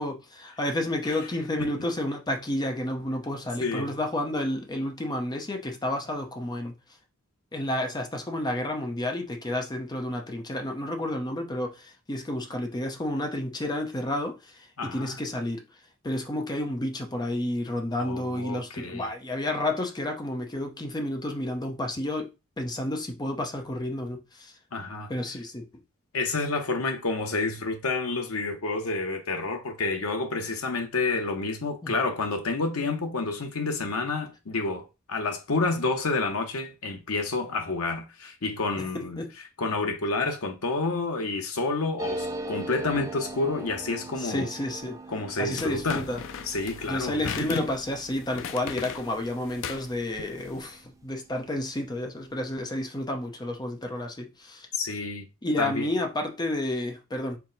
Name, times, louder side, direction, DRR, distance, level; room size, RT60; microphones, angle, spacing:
voice 1, 0.0-6.8 7.5-15.6 16.0-22.3 22.6-24.5 25.1-25.8 31.8-32.0 38.8-39.3 44.2-45.0 45.4-46.2 46.9-54.7 55.4-57.4, left 1 dB, 20° left, 0.7 m, -31 dB
voice 2, 3.6-4.0 14.8-15.2 18.0-19.1 24.7-25.1 26.1-39.3 39.6-44.5 45.1-46.0 46.4-47.7 54.7-55.3 55.6-55.9, left 3 dB, 80° left, 0.9 m, -29 dB
sound 1, 42.0-51.1 51.4-51.5 51.7-52.3, right 2 dB, 15° right, 0.3 m, -40 dB
sound 2, 45.6-50.6, left 7 dB, 60° left, 0.4 m, -39 dB
4.6 x 2.1 x 3.9 m
head